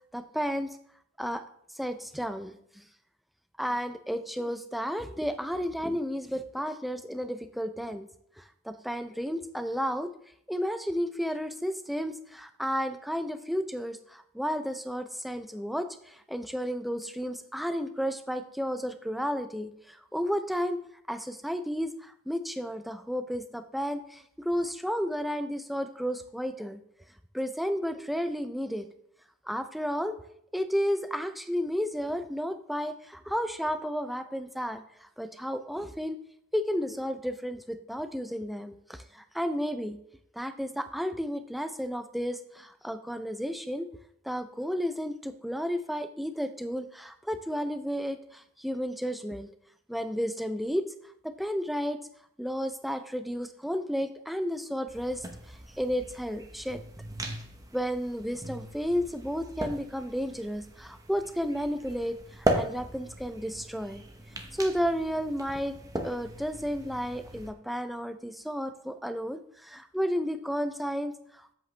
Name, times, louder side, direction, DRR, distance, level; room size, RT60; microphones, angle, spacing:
voice 1, 0.1-0.7 1.2-1.4 1.7-2.8 3.6-8.1 8.4-10.1 10.5-20.8 21.1-26.8 27.3-28.9 29.5-30.1 30.5-36.2 36.5-40.0 40.3-43.9 44.2-49.5 49.9-50.8 51.2-52.0 52.4-56.8 57.7-64.0 64.5-65.7 66.0-71.5, equal, ahead, 9 dB, 0.4 m, -32 dB
sound 1, 54.9-67.5, right 1 dB, 15° right, 0.9 m, -38 dB
7.9 x 7.6 x 3.3 m, 0.69 s
head